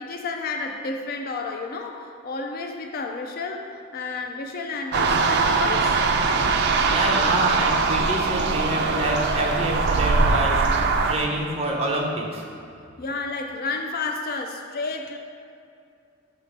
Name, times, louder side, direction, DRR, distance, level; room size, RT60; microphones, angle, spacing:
voice 1, 0.0-6.0 13.0-15.2, left 3 dB, 45° left, 4 dB, 0.4 m, -31 dB
sound 1, 4.9-11.2, right 4 dB, 55° right, 0.4 m, -21 dB
voice 2, 6.8-12.4, right 1 dB, 30° right, -2 dB, 0.8 m, -27 dB
6.6 x 3.1 x 5.1 m, 2.4 s
head